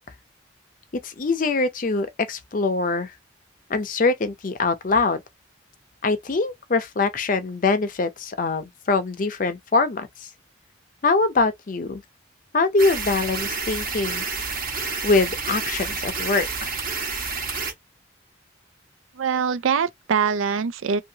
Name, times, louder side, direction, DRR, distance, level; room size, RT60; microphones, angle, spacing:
voice 1, 1.0-3.1 3.7-5.2 6.0-10.1 11.0-12.0 12.5-14.2 15.0-16.7, left 3 dB, 40° left, 0.5 m, -23 dB
sound 1, 12.8-17.7, right 4 dB, 45° right, 1.1 m, -29 dB
voice 2, 19.2-21.0, right 6 dB, 90° right, 0.4 m, -23 dB
2.7 x 2.6 x 2.7 m
head